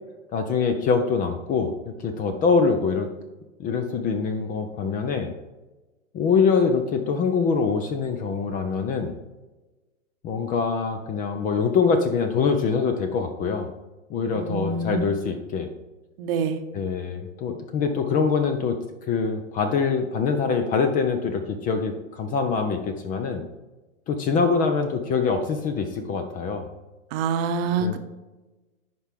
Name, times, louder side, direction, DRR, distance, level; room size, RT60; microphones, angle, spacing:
voice 1, 0.3-3.1 3.6-5.3 6.1-9.1 10.2-13.7 14.1-15.7 16.7-18.8 19.1-23.4 24.1-26.7 27.8-28.0, left 5 dB, 20° left, 7 dB, 0.5 m, -24 dB
voice 2, 14.4-15.1 16.2-16.6 27.1-28.0, right 4 dB, 45° right, 8 dB, 0.9 m, -26 dB
11.0 x 4.4 x 3.5 m, 1.1 s
hypercardioid pair, 120°, 41 cm